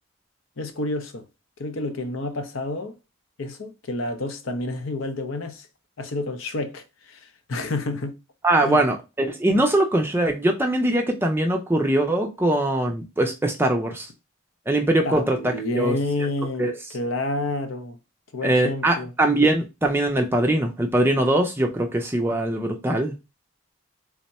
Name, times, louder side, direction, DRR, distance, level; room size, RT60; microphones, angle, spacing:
voice 1, 0.6-1.2 1.6-3.0 3.4-5.7 6.0-8.2 8.6-8.8 9.6-9.7 15.0-18.0 18.3-19.1, left 2 dB, 65° left, 0.6 m, -29 dB
voice 2, 8.4-14.1 14.7-16.0 16.6-16.7 18.4-23.2, right 1 dB, 10° right, 0.4 m, -22 dB
3.5 x 2.1 x 4.1 m
head